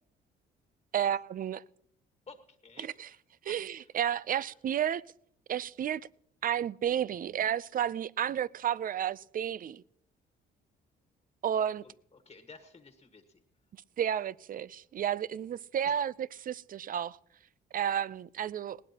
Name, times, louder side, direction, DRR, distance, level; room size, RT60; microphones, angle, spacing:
voice 1, 0.9-1.6 2.8-3.1 3.4-5.0 5.5-6.0 6.4-9.8 11.4-11.8 14.0-16.1 16.4-17.2 17.7-18.8, right 9 dB, 45° right, 0.5 m, -31 dB
voice 2, 2.3-3.9 4.3-4.6 11.8-13.4 15.8-16.0, left 4 dB, 30° left, 1.5 m, -54 dB
20.0 x 18.0 x 2.9 m
cardioid pair, 90°, 20 cm